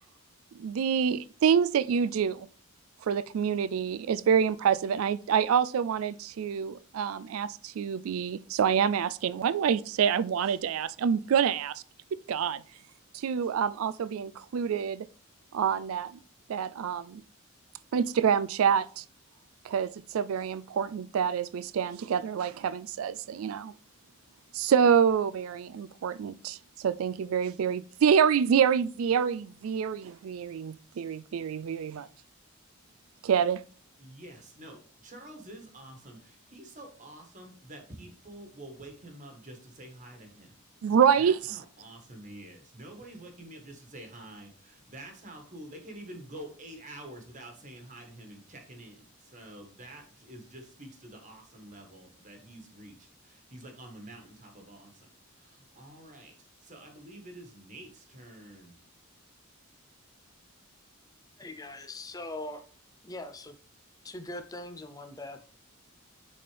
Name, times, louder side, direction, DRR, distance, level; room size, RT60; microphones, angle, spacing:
voice 1, 0.6-2.5 3.1-11.7 12.3-12.6 13.1-15.1 15.5-16.1 16.5-17.2 17.9-19.0 19.6-23.7 24.5-32.1 33.2-33.6 40.8-41.4, right 7 dB, 80° right, 0.3 m, -27 dB
voice 2, 34.0-40.5 41.2-55.1 55.4-56.3 56.6-58.7, right 1 dB, 35° right, 1.5 m, -48 dB
voice 3, 61.4-62.6 63.0-63.5 64.0-65.4, left 2 dB, 15° left, 0.5 m, -41 dB
8.8 x 4.2 x 3.4 m
head